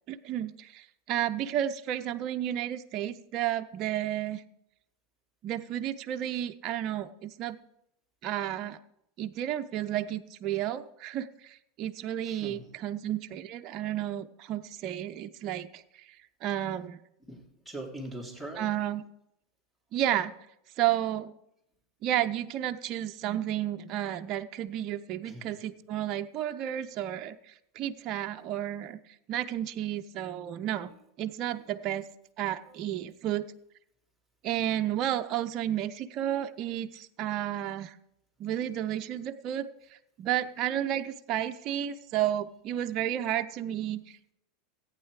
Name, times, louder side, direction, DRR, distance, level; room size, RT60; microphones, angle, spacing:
voice 1, 0.1-4.4 5.4-7.6 8.2-8.8 9.2-17.0 18.6-19.0 19.9-20.3 20.8-21.3 22.0-29.0 29.3-30.9 31.2-32.1 32.4-33.5 34.4-37.9 38.4-44.2, right 11 dB, 45° right, 8 dB, 0.6 m, -32 dB
voice 2, 12.2-12.7 17.3-18.7 25.2-25.5 28.8-28.9 30.8-31.0 32.7-32.8, right 1 dB, 5° left, 2 dB, 2.8 m, -42 dB
14.5 x 9.0 x 4.8 m, 0.80 s
hypercardioid pair, 100°, 0 cm